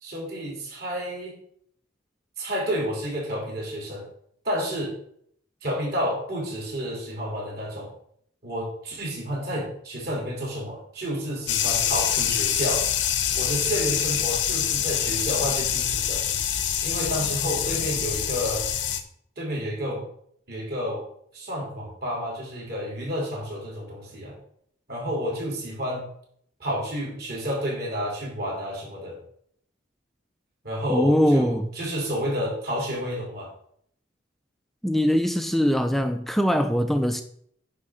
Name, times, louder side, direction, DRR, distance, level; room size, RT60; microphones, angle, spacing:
voice 1, 0.0-1.3 2.4-4.1 4.4-4.9 5.6-7.9 8.4-12.8 13.3-16.2 16.8-18.7 19.4-20.0 20.5-21.0 21.3-24.4 24.9-26.1 26.6-29.2 30.6-33.5, equal, 55° right, 3.6 m, -30 dB
sound 1, 11.5-19.0, left 9 dB, 75° left, 0.8 m, -25 dB
voice 2, 30.9-31.7 34.8-37.2, equal, ahead, 0.4 m, -22 dB
9.7 x 3.7 x 6.4 m
head